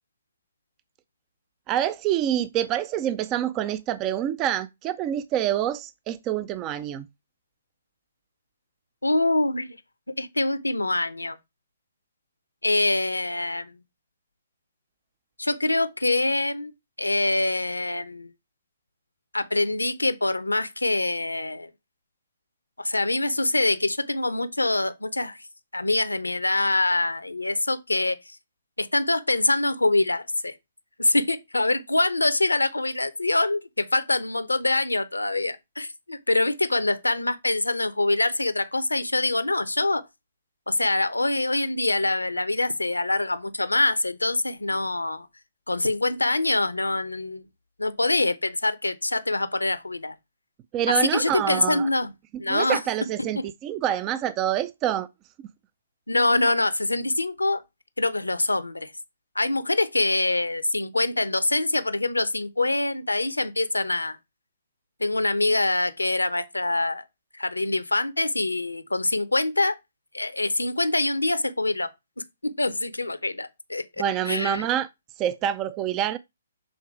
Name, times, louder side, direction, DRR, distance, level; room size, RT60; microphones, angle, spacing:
voice 1, 1.7-7.1 50.7-51.9 52.5-55.1 74.0-74.9 75.2-76.2, right 11 dB, 25° right, 0.4 m, -26 dB
voice 2, 9.0-9.8 10.2-11.4 12.6-13.7 15.4-16.7 17.0-18.3 19.3-21.7 22.8-25.4 25.7-28.4 28.8-30.6 31.0-40.0 40.7-45.3 45.7-47.4 47.8-50.2 50.9-52.1 52.4-52.8 53.4-53.5 56.1-57.6 58.0-58.9 59.3-64.2 65.0-67.0 67.3-69.8 70.1-71.9 72.4-73.9 74.2-74.6, left 2 dB, 80° left, 0.7 m, -24 dB
6.5 x 3.7 x 4.6 m
figure-of-eight pair, 130°, 0 cm